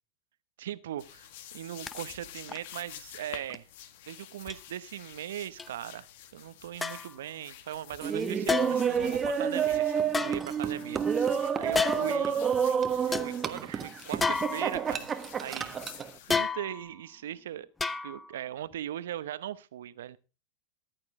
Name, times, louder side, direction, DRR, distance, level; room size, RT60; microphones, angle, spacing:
voice 1, 0.6-1.3 1.5-3.7 4.1-6.1 6.3-11.3 11.6-12.3 13.1-15.1 15.4-15.8 16.3-17.7 18.0-20.2, right 11 dB, 70° right, 16 dB, 0.9 m, -39 dB
sound 1, 1.0-16.3, left 11 dB, 60° left, 1.5 m, -49 dB
sound 2, 1.9-2.0 2.5-2.7 3.5-3.6 4.5-4.6 5.6-5.7 6.8-7.2 8.5-9.0 10.1-11.0 11.7-12.2 12.7-12.8 13.1-13.3 14.2-15.0 16.3-17.0 17.8-18.4 18.7-18.8, left 4 dB, 15° left, 0.8 m, -31 dB
Laughter, 8.0-16.1, right 7 dB, 25° right, 1.3 m, -29 dB
14.5 x 11.0 x 3.6 m, 0.31 s
hypercardioid pair, 90°, 0 cm